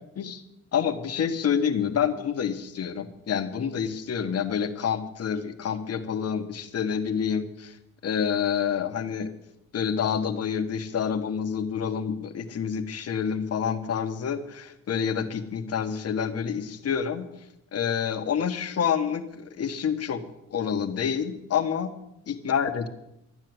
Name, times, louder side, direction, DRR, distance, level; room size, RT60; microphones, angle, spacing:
voice 1, 0.7-7.8 8.0-9.3 9.7-17.3 17.7-20.2 20.5-21.9 22.3-22.9, left 7 dB, 55° left, 7 dB, 1.6 m, -28 dB
12.5 x 9.6 x 7.9 m, 0.82 s
cardioid pair, 90°, 30 cm